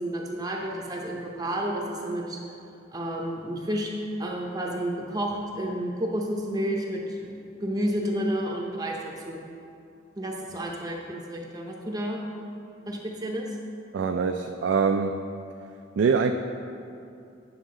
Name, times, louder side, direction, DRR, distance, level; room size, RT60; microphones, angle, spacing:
voice 1, 0.0-2.4 2.9-3.9 4.2-7.3 7.6-9.5 10.2-12.2 12.9-13.6, right 1 dB, 20° right, -1 dB, 0.6 m, -31 dB
voice 2, 13.9-15.2 16.0-16.3, right 5 dB, 75° right, 4 dB, 0.3 m, -24 dB
9.3 x 6.3 x 3.7 m, 2.5 s
head